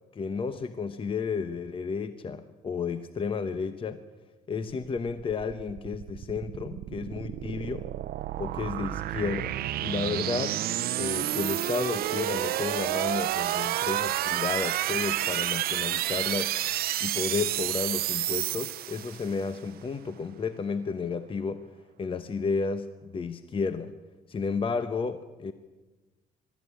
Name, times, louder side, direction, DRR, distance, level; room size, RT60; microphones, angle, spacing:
voice 1, 0.1-4.0 4.5-7.9 8.4-10.6 11.0-16.5 17.0-21.7 22.0-23.9 24.3-25.5, left 5 dB, 30° left, 11 dB, 1.0 m, -32 dB
sound 1, 5.3-19.5, right 14 dB, 65° right, 0.6 m, -30 dB
21.5 x 13.5 x 9.9 m, 1.2 s
cardioid pair, 110°, 17 cm